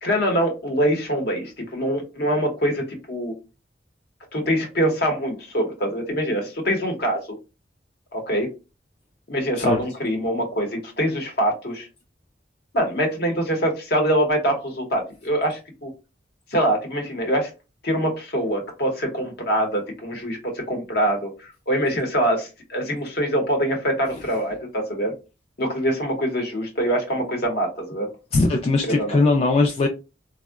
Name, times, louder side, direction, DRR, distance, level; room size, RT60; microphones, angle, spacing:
voice 1, 0.0-3.3 4.3-7.4 8.1-8.5 9.3-11.9 12.7-15.9 16.5-17.5 17.8-25.1 25.6-28.1 28.9-29.2, equal, 60° left, 2 dB, 0.9 m, -24 dB
voice 2, 28.3-29.9, left 3 dB, 35° left, 2 dB, 0.3 m, -20 dB
3.6 x 2.1 x 2.3 m, 0.29 s
head